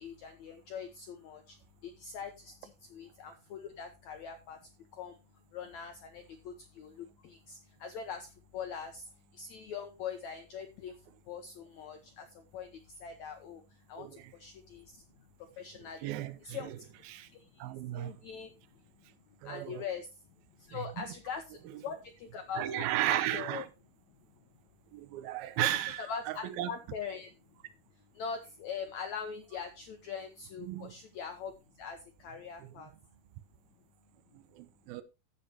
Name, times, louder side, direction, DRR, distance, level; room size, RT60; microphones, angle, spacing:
voice 1, 0.0-1.6 1.8-4.6 4.9-5.1 5.5-8.3 8.5-9.0 9.3-10.9 11.3-12.3 12.5-12.7 13.0-13.6 13.9-14.1 14.4-14.8 15.6-16.7 17.9-18.5 19.4-20.1 20.7-23.6 25.6-25.7 26.0-27.3 28.1-31.5 31.8-32.9, left 6 dB, 75° left, 1.7 m, -42 dB
voice 2, 14.0-14.3 16.0-16.8 17.1-17.3 17.6-18.2 19.4-19.8 20.7-21.1 22.6-23.7 24.9-26.7 30.6-30.9 32.6-32.9 34.3-35.0, right 14 dB, 80° right, 2.6 m, -35 dB
15.5 x 6.6 x 2.9 m
omnidirectional pair, 4.4 m